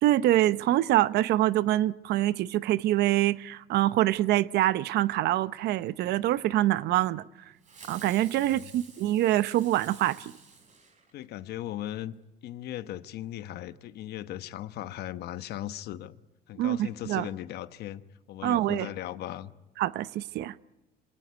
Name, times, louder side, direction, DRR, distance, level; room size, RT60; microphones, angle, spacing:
voice 1, 0.0-7.2 7.9-10.3 16.6-17.3 18.4-18.9 19.8-20.5, right 14 dB, 75° right, 0.8 m, -25 dB
Fireworks, 7.6-11.5, right 4 dB, 45° right, 6.8 m, -51 dB
voice 2, 8.3-8.7 11.1-12.1 12.4-16.2 16.5-18.0 18.3-19.5, left 13 dB, 75° left, 1.0 m, -38 dB
25.5 x 18.0 x 9.5 m
cardioid pair, 110°, 17 cm